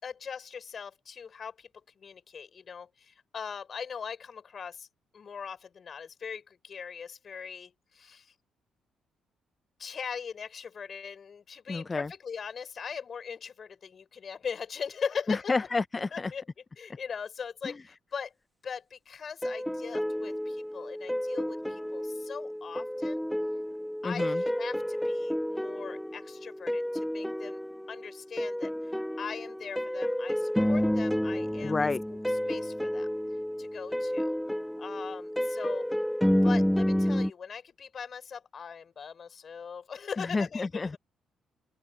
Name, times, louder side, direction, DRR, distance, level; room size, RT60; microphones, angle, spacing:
voice 1, 0.0-1.7 2.0-4.9 5.1-8.3 9.8-15.5 16.1-16.4 16.8-18.3 18.6-23.3 24.0-27.6 27.9-28.9 29.2-31.8 32.1-32.2 32.5-33.1 33.6-34.4 34.8-35.9 36.4-41.0, left 6 dB, 50° left, 4.8 m, -40 dB
voice 2, 11.7-12.1 15.3-16.3 17.6-17.7 24.0-24.4 31.6-32.0 40.2-41.0, left 3 dB, 25° left, 0.4 m, -30 dB
sound 1, 19.4-37.3, equal, 5° left, 0.9 m, -30 dB
open air
cardioid pair, 90°, 0 cm